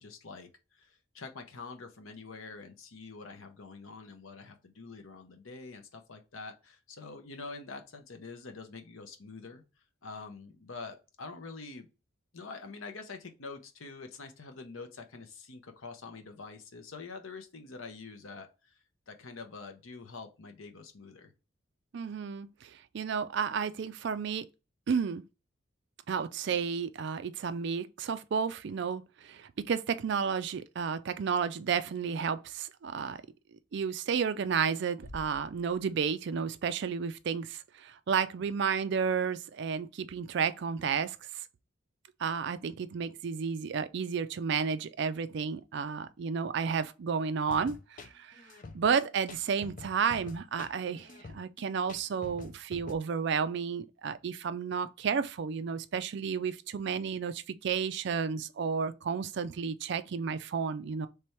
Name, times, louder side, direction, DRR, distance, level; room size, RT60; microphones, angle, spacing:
voice 1, 0.0-9.6 10.0-11.9 12.3-21.3, left 4 dB, 75° left, 0.8 m, -46 dB
voice 2, 21.9-24.5 24.9-25.2 26.1-33.2 33.7-41.4 42.2-48.4 48.7-61.1, right 6 dB, 55° right, 0.3 m, -32 dB
sound 1, 35.0-36.6, equal, 15° left, 1.6 m, -51 dB
sound 2, 47.5-53.0, left 3 dB, 40° left, 0.4 m, -47 dB
3.4 x 3.3 x 4.3 m
head